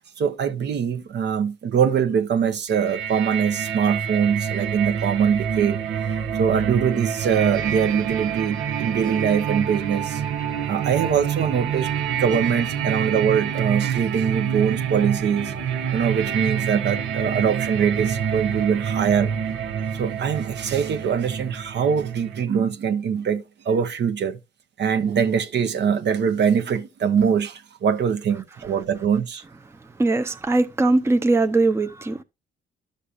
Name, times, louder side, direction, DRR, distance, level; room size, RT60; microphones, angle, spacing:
voice 1, 0.2-5.8 6.4-10.2 10.7-11.9 12.2-15.5 15.9-19.3 19.9-24.4 24.8-29.4, right 7 dB, 60° right, 1.0 m, -23 dB
sound 1, 2.7-22.4, right 8 dB, 85° right, 1.0 m, -27 dB
voice 2, 30.0-32.2, right 2 dB, 15° right, 0.6 m, -20 dB
11.5 x 6.6 x 2.5 m
cardioid pair, 90°, 20 cm